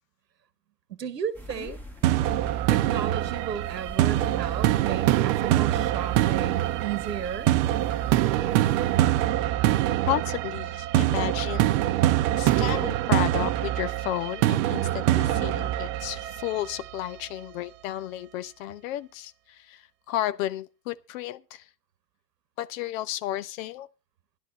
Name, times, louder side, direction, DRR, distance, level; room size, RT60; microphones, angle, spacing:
voice 1, 0.9-1.8 2.7-7.5, right 8 dB, 80° right, 1.1 m, -34 dB
sound 1, 1.3-9.3, equal, 5° left, 1.8 m, -44 dB
sound 2, 2.0-17.0, right 14 dB, 50° right, 0.7 m, -24 dB
voice 2, 10.1-11.7 12.4-21.7 22.6-23.9, left 13 dB, 55° left, 0.9 m, -33 dB
12.5 x 11.5 x 4.1 m
figure-of-eight pair, 85°, 48 cm